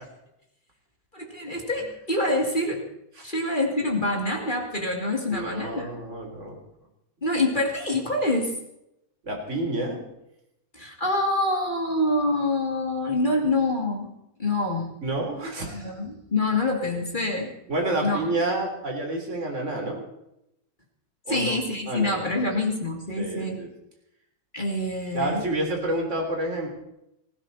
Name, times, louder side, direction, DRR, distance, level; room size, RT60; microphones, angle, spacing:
voice 1, 1.1-2.8 3.2-5.9 7.2-8.5 10.7-14.1 14.4-14.9 15.7-17.5 18.0-18.2 21.3-23.6 24.5-25.4, left 2 dB, 15° left, 1 dB, 1.9 m, -26 dB
voice 2, 5.3-6.6 9.2-10.0 15.0-16.0 17.7-20.0 21.2-21.6 21.9-22.3 23.2-23.7 25.1-26.7, right 2 dB, 20° right, 2 dB, 3.4 m, -29 dB
19.5 x 15.5 x 4.1 m, 0.83 s
omnidirectional pair, 4.0 m